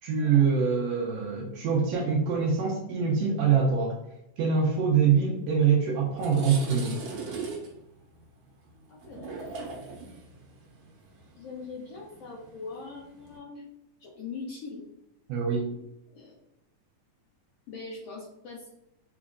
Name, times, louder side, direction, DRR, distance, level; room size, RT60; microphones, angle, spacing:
voice 1, 0.0-4.0 4.4-7.0 15.3-15.7, right 6 dB, 80° right, -2 dB, 1.5 m, -24 dB
sound 1, 5.6-5.7 6.0-13.4, right 4 dB, 65° right, 1.5 m, -41 dB
voice 2, 8.9-9.6 11.4-13.6 14.0-14.8 15.7-15.8 16.1-16.3 17.7-18.7, left 4 dB, 80° left, -2 dB, 1.4 m, -42 dB
4.2 x 4.0 x 2.4 m, 0.85 s
omnidirectional pair, 3.6 m